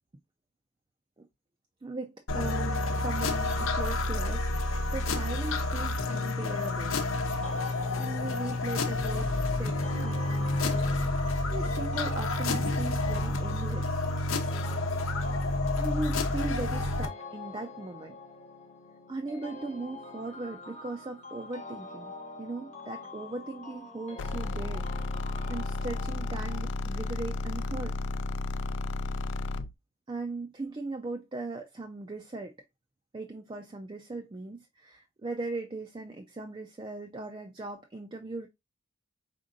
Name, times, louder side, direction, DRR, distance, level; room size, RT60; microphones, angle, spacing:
voice 1, 1.8-4.5 4.9-7.0 8.0-10.9 11.5-14.0 15.5-18.2 19.1-22.1 22.4-24.9 25.2-28.0 30.1-32.6 33.1-38.5, right 2 dB, 25° right, 0.4 m, -38 dB
sound 1, 2.3-17.1, left 2 dB, 85° left, 0.8 m, -29 dB
sound 2, 7.4-26.6, left 2 dB, 30° left, 0.8 m, -46 dB
sound 3, 24.2-29.7, left 2 dB, 60° left, 0.4 m, -33 dB
5.1 x 3.7 x 2.4 m
head